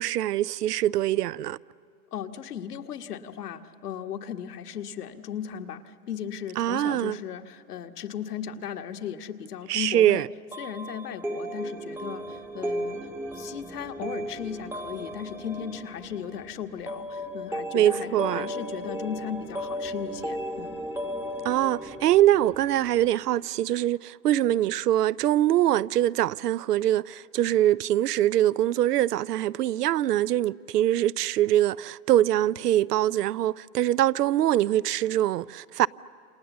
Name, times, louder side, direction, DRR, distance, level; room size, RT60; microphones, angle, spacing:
voice 1, 0.0-1.6 6.6-7.2 9.7-10.3 17.7-18.5 21.4-35.9, right 13 dB, 85° right, 0.6 m, -23 dB
voice 2, 2.1-10.3 10.6-13.0 13.3-20.8, left 8 dB, 80° left, 1.6 m, -36 dB
sound 1, 10.5-23.1, equal, 5° right, 0.9 m, -35 dB
28.5 x 27.5 x 7.2 m
hypercardioid pair, 125°, 46 cm